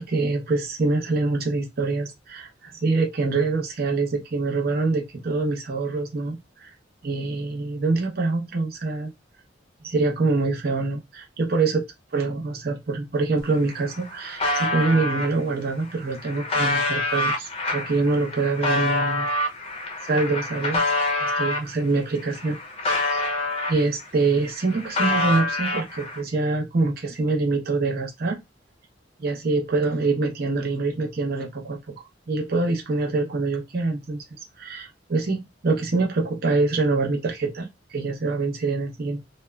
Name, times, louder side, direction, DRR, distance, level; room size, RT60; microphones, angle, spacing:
voice 1, 0.0-6.7 7.0-9.1 9.8-11.8 12.1-19.3 20.1-20.8 21.1-22.6 22.9-23.3 23.7-28.4 29.2-31.8 32.3-34.2 34.6-39.2, right 3 dB, 55° right, 0.7 m, -25 dB
sound 1, 13.4-13.5 13.7-15.3 15.9-21.7 22.2-24.1 24.4-26.2, left 2 dB, 35° left, 0.5 m, -26 dB
2.7 x 2.2 x 2.2 m
head